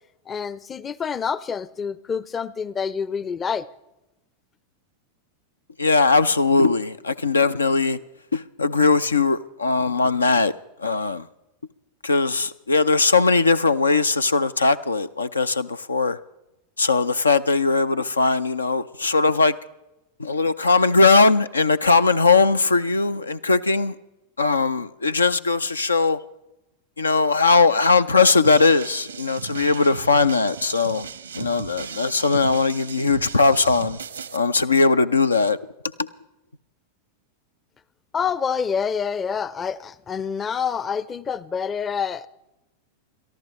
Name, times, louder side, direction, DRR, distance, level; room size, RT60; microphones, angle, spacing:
voice 1, 0.3-3.7 38.1-42.3, left 6 dB, 20° left, 0.5 m, -27 dB
voice 2, 5.8-8.0 8.3-10.5 10.8-11.2 12.0-16.2 16.8-19.5 20.2-23.9 24.4-26.2 27.0-31.1 31.4-34.0 34.3-35.6, left 4 dB, 75° left, 0.5 m, -19 dB
sound 1, 28.4-34.4, right 7 dB, 75° right, 0.8 m, -36 dB
29.0 x 14.0 x 3.1 m
figure-of-eight pair, 90°, 0 cm